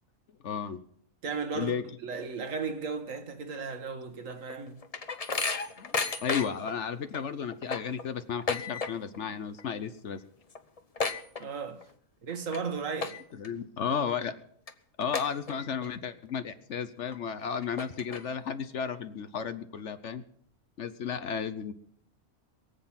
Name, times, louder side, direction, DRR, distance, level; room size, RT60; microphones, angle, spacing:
voice 1, 0.4-0.8 1.5-1.8 5.8-10.2 13.4-14.4 15.0-20.2 20.8-21.7, left 7 dB, 60° left, 1.1 m, -33 dB
voice 2, 1.2-1.7 2.0-4.8 11.4-11.9 12.2-13.2, right 5 dB, 65° right, 1.6 m, -35 dB
sound 1, 4.3-6.7 7.1-7.2 7.5-9.2 9.5-9.9 10.2-10.3 10.5-11.9 12.3-12.6 13.0-13.5 14.0-14.1 14.7-14.8 15.1-15.9 16.3-16.4 17.1-17.2 17.6-18.5, left 4 dB, 30° left, 0.8 m, -33 dB
22.5 x 7.8 x 5.8 m
omnidirectional pair, 1.5 m